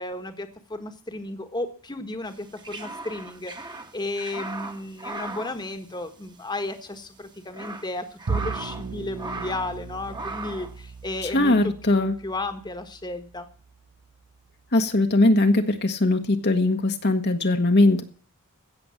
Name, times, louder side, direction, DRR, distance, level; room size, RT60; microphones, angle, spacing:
voice 1, 0.0-13.5, left 2 dB, 20° left, 8 dB, 1.4 m, -34 dB
sound 1, 2.3-6.4 6.7-6.8 7.3-8.9 9.2-9.8 10.1-10.8, right 3 dB, 20° right, 1.4 m, -37 dB
Bowed string instrument, 8.3-14.7, right 4 dB, 70° right, 0.7 m, -37 dB
voice 2, 11.3-12.1 14.7-18.0, left 2 dB, 50° left, 5 dB, 1.3 m, -20 dB
16.5 x 7.1 x 8.5 m, 0.43 s
head